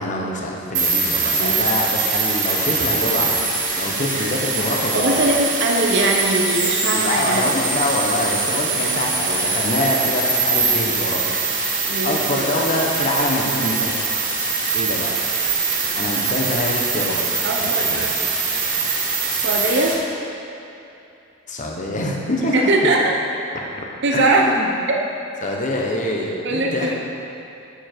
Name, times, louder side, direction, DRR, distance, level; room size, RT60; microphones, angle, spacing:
voice 1, 0.0-3.5 3.8-5.4 6.9-11.3 12.0-14.0 14.7-15.2 15.9-17.2 17.6-18.1 21.5-22.7 24.1-24.7 25.4-26.9, left 1 dB, 40° left, -1 dB, 1.0 m, -25 dB
sound 1, 0.7-19.9, right 4 dB, 40° right, 1.2 m, -22 dB
voice 2, 4.9-7.5 11.9-12.4 17.4-18.3 19.3-20.0 22.5-23.1 24.0-24.5 26.4-26.9, right 2 dB, 60° right, 0 dB, 0.7 m, -21 dB
7.1 x 7.1 x 4.5 m, 2.8 s
head